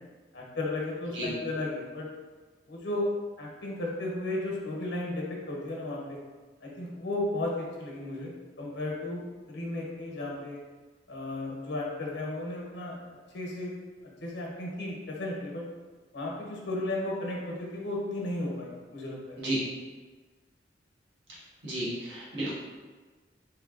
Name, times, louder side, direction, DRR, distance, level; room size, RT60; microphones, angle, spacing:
voice 1, 0.3-2.1 2.7-3.1 3.4-6.2 6.6-9.2 9.5-10.6 11.1-13.0 13.3-13.7 14.0-15.6 16.1-19.4, left 2 dB, 90° left, -3 dB, 0.9 m, -34 dB
voice 2, 21.6-22.5, right 1 dB, 85° right, -7 dB, 1.2 m, -33 dB
3.6 x 3.2 x 2.4 m, 1.4 s
head